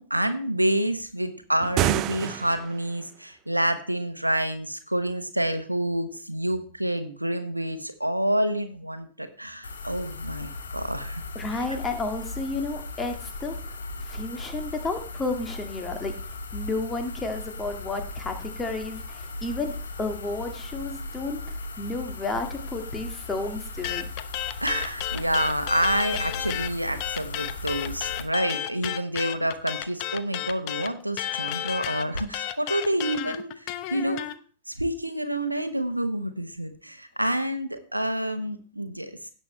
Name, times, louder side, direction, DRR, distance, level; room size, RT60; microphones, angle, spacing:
voice 1, 0.0-11.2 11.5-11.6 24.6-34.3 34.7-39.3, right 1 dB, 85° right, 9 dB, 1.0 m, -28 dB
sound 1, 1.6-2.9, right 14 dB, 35° right, 0.4 m, -27 dB
sound 2, 9.6-28.2, left 2 dB, 70° left, 1.5 m, -37 dB
voice 2, 11.4-16.2 16.5-24.0, left 3 dB, 15° left, 5 dB, 1.8 m, -32 dB
sound 3, 23.8-26.7 27.0-34.3, left 13 dB, 45° left, 0.7 m, -32 dB
16.5 x 6.7 x 3.2 m, 0.40 s
figure-of-eight pair, 90°, 0 cm